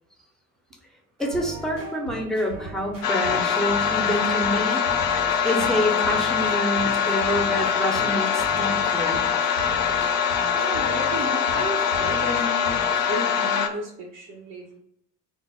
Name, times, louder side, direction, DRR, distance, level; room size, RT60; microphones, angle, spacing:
voice 1, 1.2-4.8 5.4-9.2, equal, ahead, 1 dB, 0.5 m, -27 dB
sound 1, 1.2-13.1, right 2 dB, 90° right, 0.6 m, -39 dB
sound 2, 3.0-13.7, left 8 dB, 50° left, 0.4 m, -23 dB
voice 2, 10.5-12.8 13.1-14.8, right 1 dB, 45° right, -2 dB, 0.5 m, -33 dB
2.0 x 2.0 x 3.4 m, 0.77 s
figure-of-eight pair, 50°, 37 cm